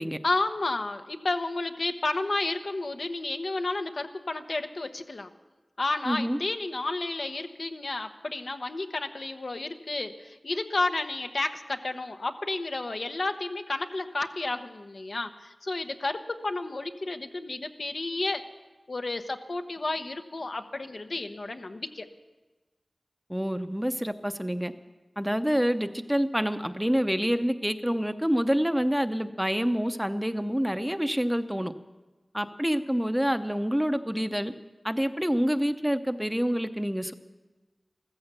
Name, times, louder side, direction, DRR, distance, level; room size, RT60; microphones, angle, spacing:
voice 1, 0.2-5.3 5.8-18.4 18.9-22.1, left 2 dB, 70° left, 6 dB, 0.9 m, -31 dB
voice 2, 6.0-6.4 23.3-24.7 25.2-31.7 32.3-34.5 34.8-37.1, equal, 5° right, 9 dB, 0.7 m, -27 dB
14.5 x 14.5 x 6.8 m, 1.2 s
wide cardioid pair, 70°, 0 cm